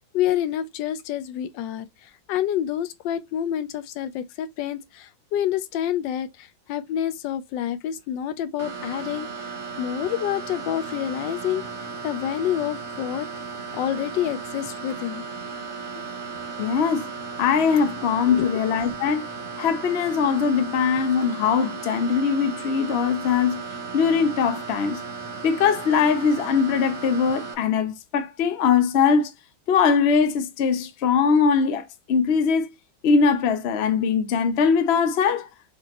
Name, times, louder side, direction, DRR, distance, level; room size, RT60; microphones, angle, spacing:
voice 1, 0.0-9.5 9.8-11.6 12.0-13.3 13.7-15.2 15.9-16.0 18.3-18.5, left 11 dB, 80° left, 1.3 m, -28 dB
sound 1, 8.6-27.5, right 4 dB, 50° right, 1.0 m, -35 dB
voice 2, 16.6-17.1 17.4-19.3 19.6-23.6 23.9-25.0 25.4-29.3 29.7-32.7 33.0-35.5, left 6 dB, 65° left, 0.6 m, -21 dB
5.1 x 3.0 x 2.8 m
omnidirectional pair, 2.0 m